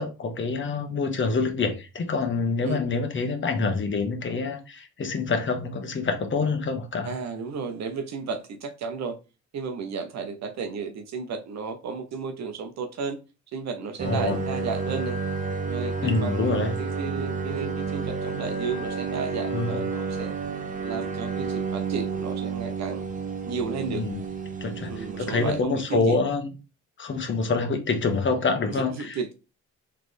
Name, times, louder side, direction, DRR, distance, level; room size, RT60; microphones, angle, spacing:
voice 1, 0.0-7.1 14.0-14.4 16.0-16.7 19.5-19.8 23.9-24.2 24.6-26.5 27.0-29.3, left 4 dB, 40° left, 1.2 m, -26 dB
voice 2, 7.0-9.2 9.5-13.2 13.5-15.2 15.7-20.3 20.8-23.0 23.5-24.0 24.9-26.2 28.7-29.3, right 5 dB, 65° right, 0.8 m, -33 dB
sound 1, 14.0-25.6, right 5 dB, 25° right, 0.9 m, -31 dB
4.0 x 3.3 x 3.3 m
cardioid pair, 90°, 30 cm